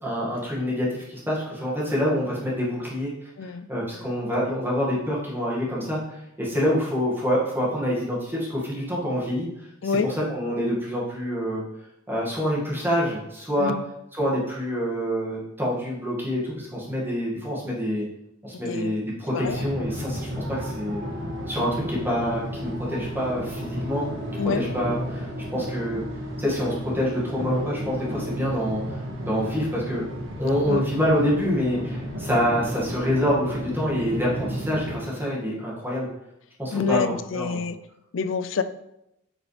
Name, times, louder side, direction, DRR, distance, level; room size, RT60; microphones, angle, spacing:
voice 1, 0.0-3.1 3.4-9.5 9.8-11.6 12.1-13.7 14.1-18.0 18.4-21.0 21.5-24.1 24.5-26.0 26.4-36.1 36.6-37.6, equal, 10° right, -5 dB, 1.9 m, -26 dB
sound 1, 19.4-35.0, equal, 70° right, 1.7 m, -32 dB
voice 2, 36.7-37.8 38.1-38.6, left 5 dB, 70° left, 12 dB, 0.5 m, -26 dB
8.0 x 7.3 x 3.3 m, 0.84 s
head